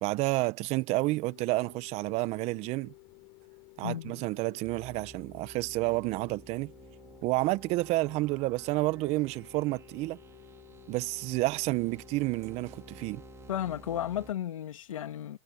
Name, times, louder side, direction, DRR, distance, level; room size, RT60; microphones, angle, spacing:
voice 1, 0.0-2.9 3.8-6.7 7.2-10.2 10.9-13.2, right 21 dB, 40° right, 1.0 m, -30 dB
sound 1, 1.2-13.9, left 25 dB, 45° left, 3.1 m, -55 dB
voice 2, 3.8-4.2 13.5-15.4, left 11 dB, 80° left, 2.5 m, -34 dB
sound 2, 4.6-14.3, right 6 dB, 15° right, 2.0 m, -53 dB
hypercardioid pair, 120°, 17 cm